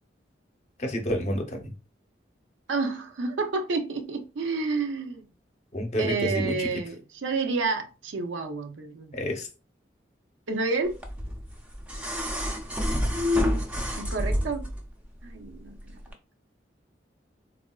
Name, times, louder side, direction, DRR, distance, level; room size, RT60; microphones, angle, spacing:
voice 1, 0.8-1.7 5.7-6.7 9.1-9.5, equal, 35° left, 0.6 m, -29 dB
voice 2, 2.7-5.3 6.0-9.2 10.5-11.0 14.0-14.7 15.2-16.0, right 4 dB, 85° right, 0.5 m, -30 dB
sound 1, 11.0-14.8 16.1-16.2, left 1 dB, 5° right, 0.4 m, -28 dB
3.7 x 2.4 x 2.3 m
head